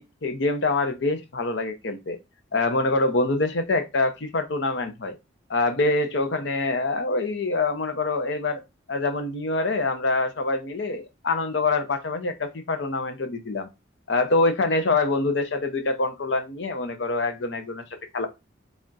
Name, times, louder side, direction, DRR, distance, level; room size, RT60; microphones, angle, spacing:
voice 1, 0.0-2.2 2.5-5.1 5.5-8.6 8.9-13.7 14.1-17.8 18.1-18.3, left 3 dB, 65° left, 0.7 m, -25 dB
3.4 x 2.4 x 3.9 m
head